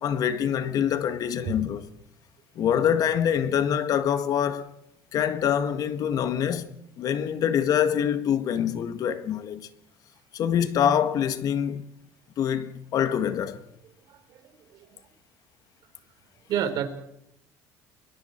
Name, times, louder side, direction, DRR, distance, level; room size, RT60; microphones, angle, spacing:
voice 1, 0.0-1.8 2.5-4.7 5.1-9.7 10.3-11.9 12.4-13.6, left 9 dB, 50° left, 1.7 m, -25 dB
voice 2, 14.1-15.0 16.5-16.8, right 9 dB, 55° right, 3.7 m, -31 dB
30.0 x 21.5 x 4.5 m
cardioid pair, 110°, 8 cm